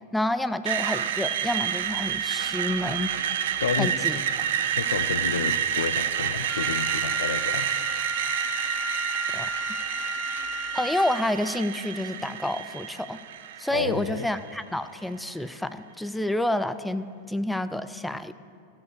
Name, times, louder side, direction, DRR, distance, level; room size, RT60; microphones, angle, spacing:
voice 1, 0.1-3.2 3.8-4.2 9.3-9.5 10.7-13.2 13.6-18.3, left 1 dB, 5° left, 11 dB, 0.3 m, -29 dB
Screech, 0.7-14.6, right 9 dB, 55° right, 0.5 m, -29 dB
voice 2, 3.6-4.0 4.7-7.7 13.7-14.3, left 7 dB, 65° left, 13 dB, 0.4 m, -30 dB
Wind instrument woodwind instrument, 6.5-11.3, left 1 dB, 15° right, 0.8 m, -34 dB
15.0 x 5.4 x 6.6 m, 2.3 s
figure-of-eight pair, 90°, 0 cm